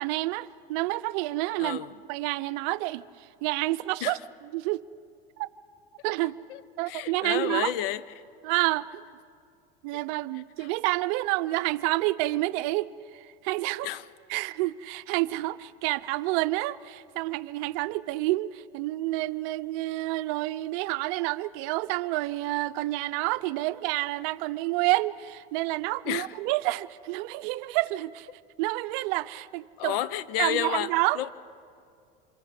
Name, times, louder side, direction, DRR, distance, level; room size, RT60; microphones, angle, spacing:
voice 1, 0.0-1.8 2.1-4.8 5.4-5.5 6.0-6.4 6.8-7.7 8.4-9.0 9.8-13.9 14.3-28.3 28.6-30.0 30.4-31.2, right 19 dB, 60° right, 0.6 m, -29 dB
voice 2, 1.6-1.9 4.0-4.2 6.5-8.0 10.6-10.7 13.8-14.0 26.1-26.3 29.8-30.9 31.1-31.3, left 11 dB, 70° left, 0.8 m, -30 dB
27.0 x 23.5 x 4.9 m
hypercardioid pair, 95°, 30 cm